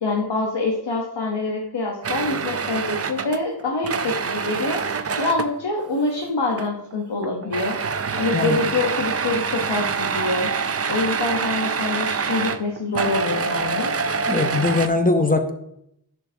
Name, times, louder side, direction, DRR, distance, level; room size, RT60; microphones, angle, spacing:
voice 1, 0.0-4.8 5.2-7.8 8.2-10.5 10.9-13.9, left 3 dB, 90° left, -1 dB, 0.9 m, -25 dB
sound 1, 2.0-5.6 6.5-6.9 7.2-14.9, right 5 dB, 40° right, 0.4 m, -26 dB
voice 2, 14.3-15.5, left 3 dB, 20° left, 6 dB, 0.7 m, -20 dB
10.5 x 4.5 x 2.7 m, 0.77 s
wide cardioid pair, 60°, 41 cm